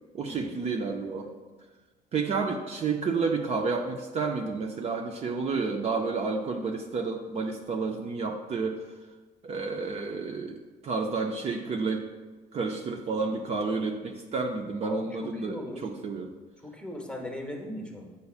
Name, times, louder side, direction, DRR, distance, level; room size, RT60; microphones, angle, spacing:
voice 1, 0.1-1.3 2.1-8.9 9.4-12.1 12.5-16.4, right 4 dB, 40° right, 2 dB, 0.5 m, -30 dB
voice 2, 14.8-15.9 16.6-18.1, left 1 dB, 5° left, 1 dB, 0.9 m, -39 dB
8.1 x 5.3 x 2.4 m, 1.3 s
cardioid pair, 110°, 17 cm